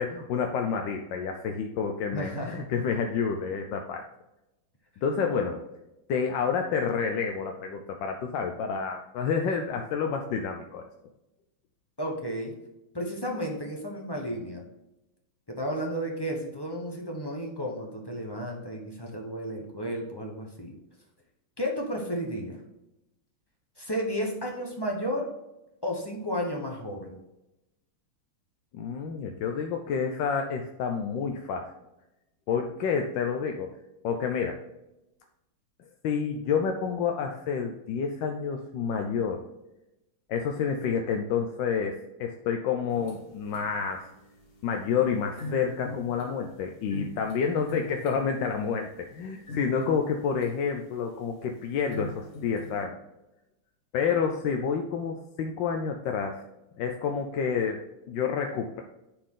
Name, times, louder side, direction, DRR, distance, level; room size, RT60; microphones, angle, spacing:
voice 1, 0.0-4.0 5.0-5.6 6.1-10.9 28.7-31.7 32.5-33.8 34.0-34.6 36.0-39.5 40.3-44.1 44.6-53.0 53.9-56.4 56.8-58.8, left 6 dB, 70° left, 4 dB, 1.2 m, -29 dB
voice 2, 2.1-2.6 5.3-5.4 12.0-12.5 12.9-14.6 15.5-20.7 21.6-22.6 23.8-25.3 25.8-27.2, equal, 20° left, 0 dB, 0.7 m, -33 dB
sound 1, 42.9-52.8, left 1 dB, 50° left, 2.4 m, -45 dB
10.0 x 4.4 x 3.8 m, 0.94 s
omnidirectional pair, 2.3 m